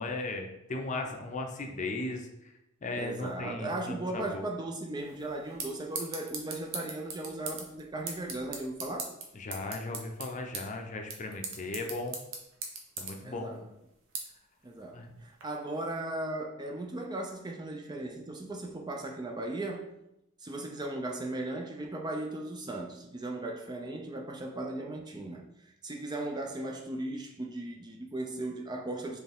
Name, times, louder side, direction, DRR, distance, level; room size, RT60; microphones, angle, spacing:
voice 1, 0.0-2.5 2.8-4.4 9.3-12.2 13.0-13.5 14.9-15.1, left 2 dB, 35° left, 0.6 m, -37 dB
voice 2, 3.0-9.1 13.2-13.7 14.6-19.9 20.4-29.2, right 2 dB, 20° right, 0.4 m, -37 dB
sound 1, 5.0-15.4, right 4 dB, 65° right, 0.9 m, -42 dB
4.5 x 3.4 x 3.5 m
head